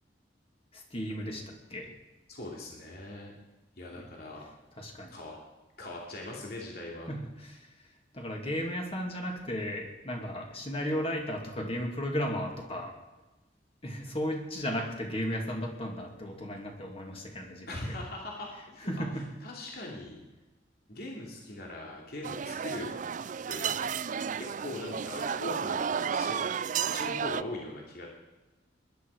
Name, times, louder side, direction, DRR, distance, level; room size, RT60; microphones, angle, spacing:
voice 1, 0.7-1.9 4.0-4.1 4.8-5.1 7.1-7.7 8.1-12.9 13.8-17.7 18.8-19.3, equal, 35° left, 1 dB, 2.6 m, -35 dB
voice 2, 2.3-3.3 3.8-4.4 5.1-5.4 5.8-7.1 17.7-20.2 20.9-22.9 23.5-23.9 24.4-26.4 26.9-28.1, left 1 dB, 60° left, -2 dB, 2.9 m, -40 dB
sound 1, 22.2-27.4, right 7 dB, 45° right, 0.4 m, -32 dB
20.5 x 11.5 x 4.9 m, 1.1 s
head